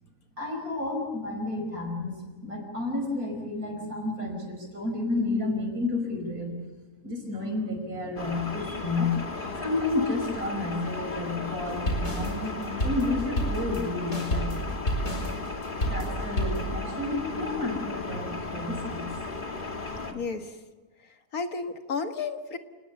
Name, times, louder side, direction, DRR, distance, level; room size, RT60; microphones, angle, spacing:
voice 1, 0.4-2.2 2.4-6.5 7.0-9.1 9.6-14.7 15.8-19.1, left 2 dB, 85° right, 4 dB, 5.7 m, -31 dB
sound 1, 8.2-20.1, left 3 dB, 35° left, 2.1 m, -36 dB
sound 2, 11.6-16.7, equal, 55° left, 5.1 m, -29 dB
voice 2, 20.1-20.6 21.3-22.6, left 4 dB, 80° left, 7 dB, 2.0 m, -32 dB
28.5 x 20.0 x 7.1 m, 1.2 s
omnidirectional pair, 1.5 m